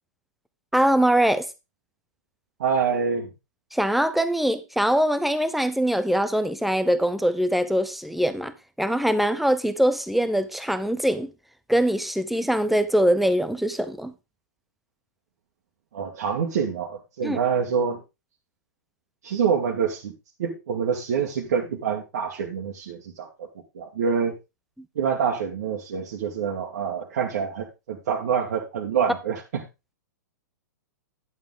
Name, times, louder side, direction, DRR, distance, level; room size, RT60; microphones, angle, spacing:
voice 1, 0.7-1.5 3.7-11.3 11.7-14.1 17.2-17.4, equal, ahead, 0.8 m, -23 dB
voice 2, 2.6-3.3 15.9-18.0 19.2-20.1 20.4-23.5 23.7-24.3 25.0-29.4, right 6 dB, 60° right, 1.9 m, -26 dB
11.0 x 7.4 x 3.8 m
figure-of-eight pair, 105°, 10 cm